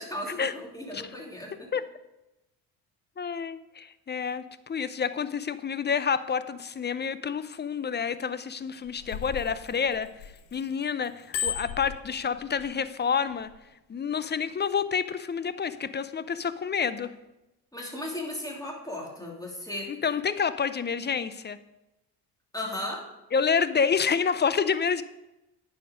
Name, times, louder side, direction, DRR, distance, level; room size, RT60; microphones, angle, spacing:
voice 1, 0.0-1.7 17.7-19.9 22.5-23.1, left 1 dB, 10° left, -2 dB, 2.8 m, -36 dB
voice 2, 3.2-10.1 10.5-13.5 13.9-17.1 19.9-21.6 23.3-25.0, left 6 dB, 25° left, 14 dB, 0.5 m, -28 dB
Bicycle bell, 8.7-10.6 11.0-12.7 13.3-13.5, left 8 dB, 90° left, 0.9 m, -35 dB
10.0 x 5.0 x 5.1 m, 0.96 s
supercardioid pair, 65°, 42 cm